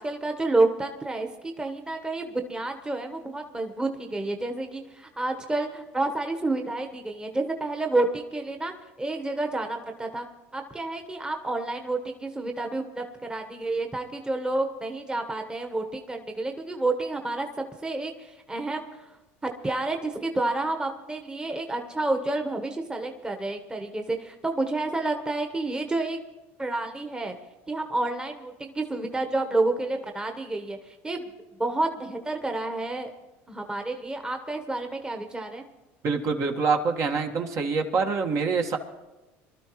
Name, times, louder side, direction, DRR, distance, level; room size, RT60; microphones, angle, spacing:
voice 1, 0.0-8.7 9.0-10.3 10.5-17.5 17.8-19.0 19.4-26.2 26.6-27.3 27.7-31.3 31.6-33.1 33.5-35.7, right 2 dB, 15° right, 4 dB, 1.2 m, -29 dB
voice 2, 36.0-38.8, right 4 dB, 50° right, 3 dB, 1.6 m, -25 dB
24.0 x 12.5 x 3.1 m, 1.0 s
supercardioid pair, 95°, 7 cm